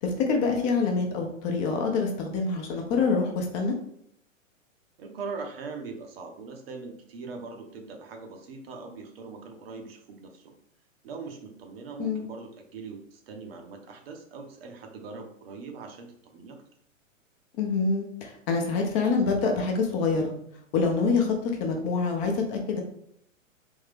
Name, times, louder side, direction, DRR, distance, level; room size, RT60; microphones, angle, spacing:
voice 1, 0.0-3.7 12.0-12.2 17.6-20.3 20.7-22.8, left 4 dB, 30° left, 2 dB, 0.7 m, -26 dB
voice 2, 5.0-10.5 11.0-16.6, right 4 dB, 45° right, 3 dB, 0.9 m, -41 dB
3.6 x 3.1 x 3.4 m, 0.70 s
figure-of-eight pair, 110°, 40 cm